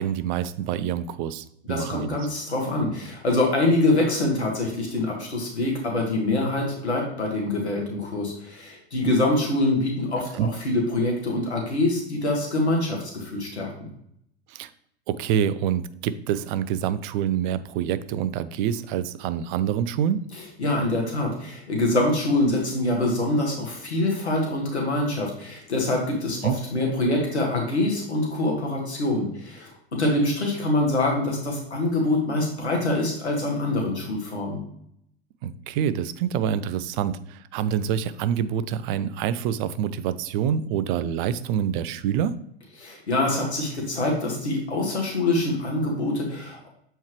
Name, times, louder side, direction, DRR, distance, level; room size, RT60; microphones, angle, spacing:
voice 1, 0.0-2.2 10.3-10.5 14.5-14.7 15.1-20.3 26.4-26.6 35.4-42.4, right 9 dB, 50° right, 15 dB, 0.5 m, -26 dB
voice 2, 1.7-13.9 20.6-34.6 42.8-46.7, left 2 dB, 90° left, 0 dB, 1.7 m, -25 dB
7.2 x 4.5 x 3.1 m, 0.70 s
hypercardioid pair, 95°, 32 cm